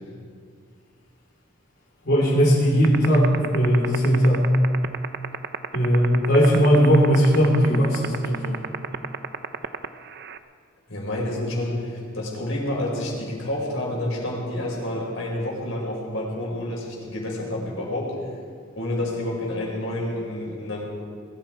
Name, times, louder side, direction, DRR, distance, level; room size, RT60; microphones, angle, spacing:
voice 1, 2.0-4.5 5.7-8.6, equal, 50° left, -7 dB, 3.3 m, -18 dB
sound 1, 2.8-10.4, right 7 dB, 50° right, 0.6 m, -27 dB
voice 2, 10.9-18.1 18.8-20.8, left 1 dB, 70° left, -3 dB, 5.3 m, -29 dB
21.5 x 14.5 x 4.6 m, 2.2 s
head